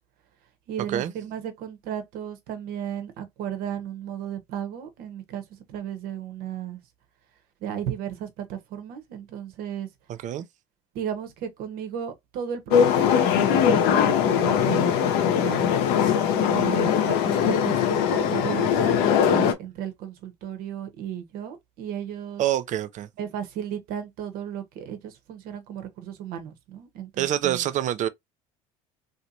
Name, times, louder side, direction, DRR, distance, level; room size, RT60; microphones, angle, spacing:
voice 1, 0.7-6.8 7.6-9.9 10.9-15.7 16.3-22.4 23.2-27.7, right 9 dB, 60° right, 1.1 m, -34 dB
voice 2, 10.1-10.5 19.3-19.4 22.4-23.1 27.2-28.1, right 12 dB, 45° right, 0.6 m, -26 dB
sound 1, 12.7-19.5, left 8 dB, 65° left, 0.8 m, -21 dB
3.2 x 2.9 x 2.6 m
hypercardioid pair, 70°, 17 cm